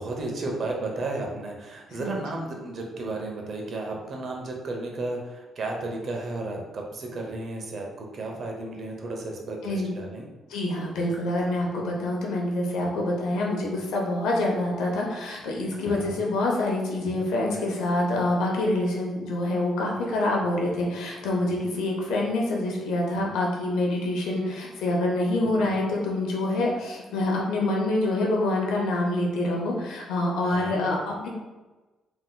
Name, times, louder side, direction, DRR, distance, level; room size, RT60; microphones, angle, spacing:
voice 1, 0.0-10.3 15.9-16.2 25.4-25.8 30.4-30.8, right 2 dB, 55° right, 1 dB, 0.7 m, -33 dB
voice 2, 10.5-31.3, left 2 dB, 90° left, -1 dB, 0.7 m, -26 dB
3.5 x 2.8 x 2.2 m, 1.2 s
cardioid pair, 90°, 0 cm